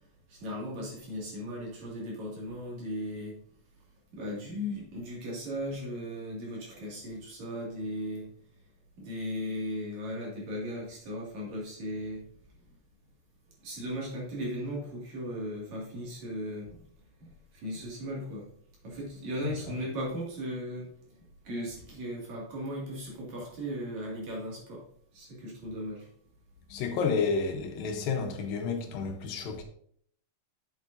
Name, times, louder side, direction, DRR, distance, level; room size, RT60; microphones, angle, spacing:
voice 1, 0.3-3.4 4.1-8.3 9.0-12.2 13.6-16.8 17.5-18.5 18.8-20.9 21.5-24.8 25.1-26.1, equal, 55° right, 3.3 m, -37 dB
voice 2, 26.7-29.6, left 5 dB, 80° left, 2.7 m, -30 dB
8.5 x 7.2 x 2.6 m
omnidirectional pair, 4.1 m